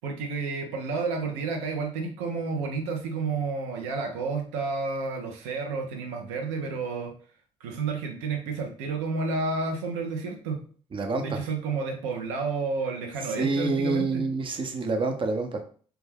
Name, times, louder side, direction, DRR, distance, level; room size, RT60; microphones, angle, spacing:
voice 1, 0.0-7.1 7.6-10.6 11.2-14.2, right 4 dB, 90° right, 2 dB, 0.5 m, -30 dB
voice 2, 10.9-11.4 13.4-15.6, right 3 dB, 35° right, 5 dB, 0.6 m, -27 dB
2.2 x 2.1 x 3.2 m, 0.44 s
supercardioid pair, 60°, 14 cm